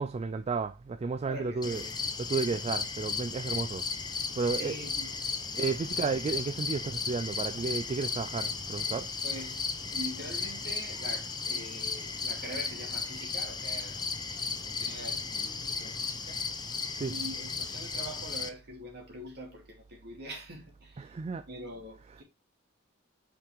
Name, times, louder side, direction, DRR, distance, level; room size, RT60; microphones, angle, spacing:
voice 1, 0.0-1.8 2.2-3.8 4.3-4.7 5.5-9.1 17.0-17.1 21.0-21.4, right 4 dB, 30° right, 0.3 m, -32 dB
voice 2, 1.2-2.0 4.5-5.2 5.9-6.1 9.2-14.0 14.4-16.4 17.0-21.1 21.5-22.2, right 1 dB, 50° right, 2.6 m, -44 dB
sound 1, 1.6-18.5, left 4 dB, 20° left, 0.7 m, -35 dB
5.5 x 5.1 x 3.5 m
head